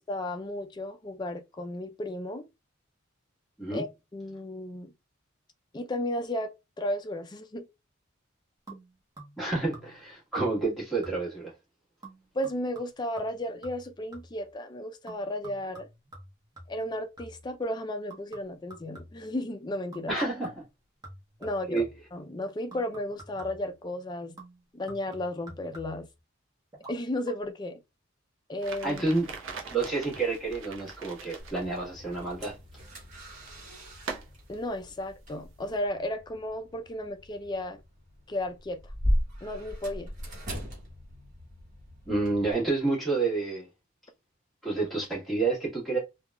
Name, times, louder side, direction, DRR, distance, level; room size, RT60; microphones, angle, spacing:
voice 1, 0.1-2.5 3.7-3.9 4.1-4.9 5.7-7.7 12.3-15.9 16.7-20.2 21.4-21.8 22.1-24.4 24.7-26.1 26.9-27.8 28.5-29.0 34.5-37.8 38.3-38.8 39.4-40.1, left 1 dB, 20° left, 0.3 m, -34 dB
sound 1, 8.7-9.5 9.7-10.1 10.4-10.7 11.0-11.5 12.0-14.5 15.1-17.5 18.1-19.4 19.9-20.2 20.4-22.1 22.7-23.7 24.4-26.1 26.7-27.0 27.2-27.3, right 1 dB, 20° right, 0.9 m, -49 dB
voice 2, 9.4-11.5 20.1-20.6 21.4-21.8 28.8-29.3 29.7-32.5 42.1-43.7 44.6-46.0, right 3 dB, ahead, 1.4 m, -29 dB
sound 2, 28.6-35.8, right 4 dB, 70° right, 0.6 m, -44 dB
sound 3, 31.4-42.5, equal, 40° right, 1.2 m, -37 dB
3.4 x 2.3 x 2.2 m
head